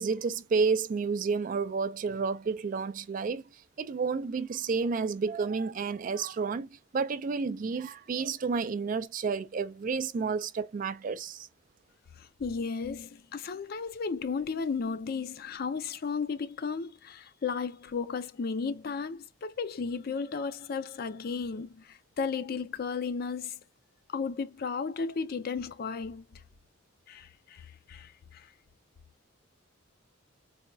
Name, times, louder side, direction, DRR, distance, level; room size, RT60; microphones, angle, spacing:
voice 1, 0.0-3.4 3.8-11.5, right 5 dB, 40° right, 0.3 m, -30 dB
voice 2, 12.2-23.6 24.1-26.4 27.1-28.5, left 5 dB, 50° left, 0.4 m, -34 dB
4.1 x 2.3 x 2.5 m
head